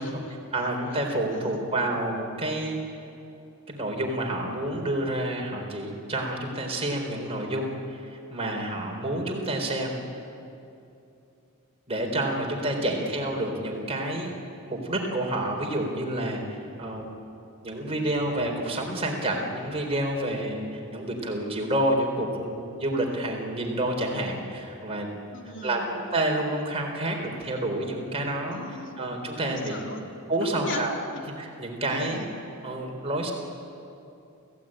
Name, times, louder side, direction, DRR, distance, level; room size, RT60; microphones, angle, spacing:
voice 1, 0.0-0.7 1.3-1.7 12.8-13.0 25.3-25.9 28.5-29.0 29.4-30.0 30.4-30.9 31.1-31.2 31.9-32.4, left 2 dB, 55° left, 1 dB, 2.9 m, -38 dB
voice 2, 0.5-2.8 3.7-10.0 11.9-14.3 14.7-17.1 17.6-25.1 25.4-28.6 29.0-29.7 30.3-31.0 31.4-32.2 32.6-33.3, right 1 dB, 25° right, 1 dB, 3.9 m, -29 dB
28.0 x 16.0 x 9.0 m, 2.7 s
head